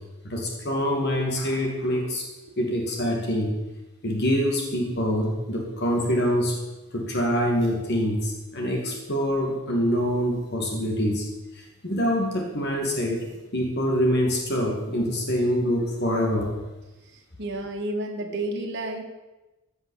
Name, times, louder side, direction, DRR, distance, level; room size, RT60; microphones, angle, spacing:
voice 1, 0.2-2.3 2.6-3.5 4.0-6.6 6.9-11.2 11.6-13.2 13.5-16.5, equal, 50° left, 1 dB, 2.2 m, -25 dB
voice 2, 17.4-19.0, right 1 dB, 55° right, 2 dB, 1.6 m, -30 dB
15.0 x 5.6 x 7.1 m, 1.1 s
head